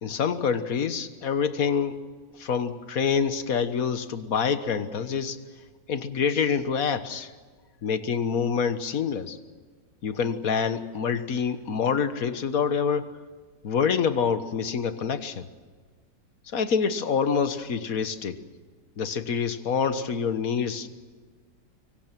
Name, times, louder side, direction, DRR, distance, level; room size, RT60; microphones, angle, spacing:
voice 1, 0.0-2.0 2.3-5.4 5.9-7.3 7.8-9.4 10.0-13.1 13.6-15.5 16.4-18.4 19.0-20.9, left 6 dB, 55° left, 10 dB, 1.6 m, -26 dB
25.0 x 24.0 x 6.1 m, 1.5 s
omnidirectional pair, 1.9 m